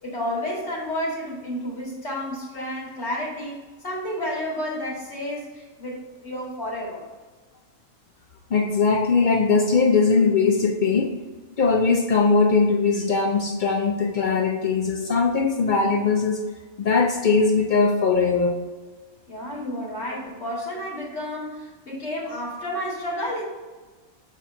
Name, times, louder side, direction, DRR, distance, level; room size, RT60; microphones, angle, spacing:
voice 1, 0.0-7.0 19.3-23.4, left 1 dB, 50° left, -5 dB, 2.2 m, -31 dB
voice 2, 8.5-11.2 11.6-16.4 16.8-18.6, left 4 dB, 75° left, 2 dB, 0.4 m, -20 dB
7.0 x 3.0 x 5.5 m, 1.3 s
omnidirectional pair, 1.5 m